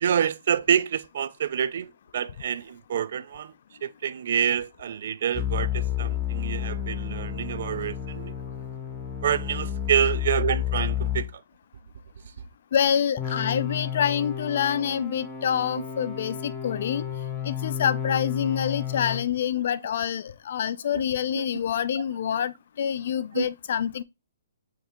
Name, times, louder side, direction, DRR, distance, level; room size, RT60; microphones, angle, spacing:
voice 1, 0.0-3.5 3.8-8.3 9.2-11.4 21.3-21.5 22.0-22.1 23.3-23.5, right 8 dB, 50° right, 0.3 m, -27 dB
sound 1, 5.3-11.3 13.2-19.3, left 10 dB, 15° left, 0.7 m, -31 dB
voice 2, 12.7-17.0 17.4-24.0, left 8 dB, 45° left, 0.3 m, -26 dB
4.5 x 2.8 x 3.4 m
hypercardioid pair, 170°, 0 cm